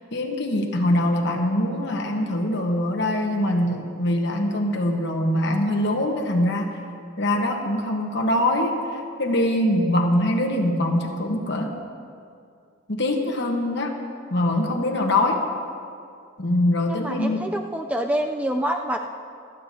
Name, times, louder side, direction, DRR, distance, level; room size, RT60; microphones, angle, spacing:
voice 1, 0.1-6.8 7.2-11.8 12.9-14.0 14.3-15.4 16.4-17.4, left 1 dB, 55° left, 2 dB, 1.2 m, -23 dB
voice 2, 16.9-19.1, right 1 dB, 5° right, 3 dB, 0.4 m, -26 dB
26.5 x 9.1 x 2.8 m, 2.3 s
head